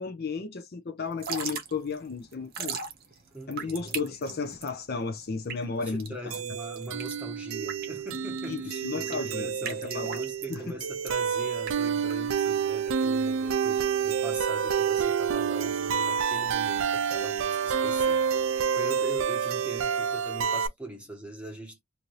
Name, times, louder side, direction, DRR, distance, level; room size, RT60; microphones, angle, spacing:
voice 1, 0.0-2.8 3.5-6.4 8.5-10.2 10.5-10.6, left 4 dB, 45° left, 0.5 m, -34 dB
Drip / Trickle dribble, 1.1-12.7, right 6 dB, 45° right, 0.8 m, -40 dB
voice 2, 3.3-3.8 4.1-4.4 5.8-21.8, right 1 dB, 5° right, 1.1 m, -41 dB
sound 1, 6.3-20.7, right 7 dB, 60° right, 0.4 m, -28 dB
2.6 x 2.6 x 3.1 m
head